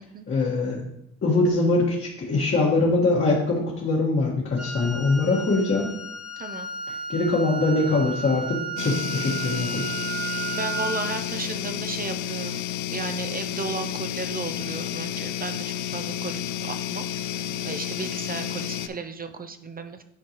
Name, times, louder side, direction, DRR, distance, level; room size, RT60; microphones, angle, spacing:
voice 1, 0.3-0.8 1.2-5.9 7.1-9.9, left 3 dB, 40° left, -5 dB, 1.6 m, -23 dB
Wind instrument woodwind instrument, 4.6-11.2, right 4 dB, ahead, 1.3 m, -34 dB
voice 2, 6.4-6.7 10.5-12.6 12.9-17.1 17.6-20.0, right 4 dB, 30° right, 8 dB, 0.5 m, -34 dB
sound 1, 8.8-18.9, left 10 dB, 70° left, 0.5 m, -31 dB
9.8 x 4.6 x 3.0 m, 0.78 s
cardioid pair, 90°, 30 cm